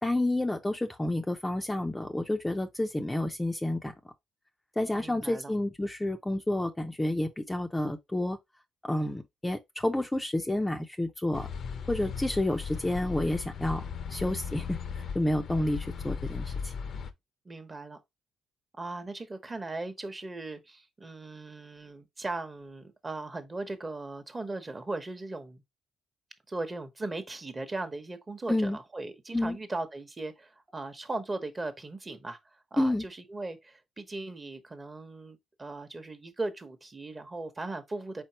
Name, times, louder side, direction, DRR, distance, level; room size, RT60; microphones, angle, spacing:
voice 1, 0.0-3.9 4.8-8.4 8.8-11.5 11.9-13.8 14.1-16.7 28.5-28.8 29.3-29.6 32.8-33.0, left 1 dB, 10° left, 0.5 m, -30 dB
voice 2, 5.0-5.5 17.4-18.0 18.8-25.6 26.5-32.4 32.7-38.2, right 2 dB, 25° right, 1.0 m, -38 dB
sound 1, 11.3-17.1, left 6 dB, 65° left, 0.6 m, -37 dB
4.4 x 4.1 x 2.9 m
cardioid pair, 90°, 0 cm